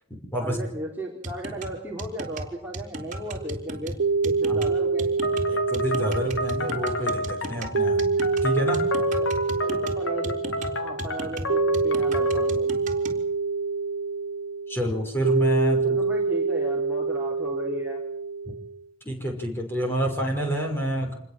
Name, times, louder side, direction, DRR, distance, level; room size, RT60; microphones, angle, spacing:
voice 1, 0.4-4.0 4.2-5.2 9.2-9.3 9.6-10.4 10.8-12.8 15.9-18.0, right 1 dB, 10° right, -3 dB, 4.1 m, -35 dB
sound 1, 1.2-13.2, right 1 dB, 35° right, 3.9 m, -36 dB
sound 2, 3.4-18.8, right 4 dB, 80° right, 1.1 m, -26 dB
sound 3, 5.2-12.6, left 2 dB, 70° left, 2.7 m, -31 dB
voice 2, 5.5-8.9 14.7-16.0 19.0-21.2, right 1 dB, 10° left, 2 dB, 5.7 m, -28 dB
26.5 x 21.0 x 7.6 m, 0.71 s
head